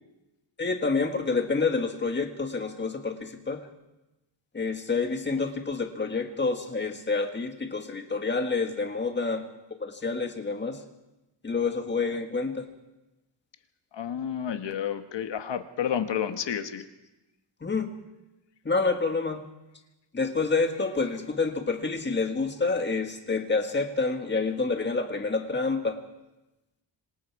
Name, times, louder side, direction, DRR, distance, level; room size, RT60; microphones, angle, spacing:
voice 1, 0.6-3.6 4.5-9.5 9.8-10.8 11.4-12.7 17.6-18.0 18.7-19.4 20.1-26.0, left 4 dB, 25° left, 5 dB, 1.7 m, -28 dB
voice 2, 13.9-16.8, left 9 dB, 65° left, 8 dB, 1.5 m, -30 dB
26.5 x 25.5 x 4.8 m, 1.0 s
wide cardioid pair, 175°, 46 cm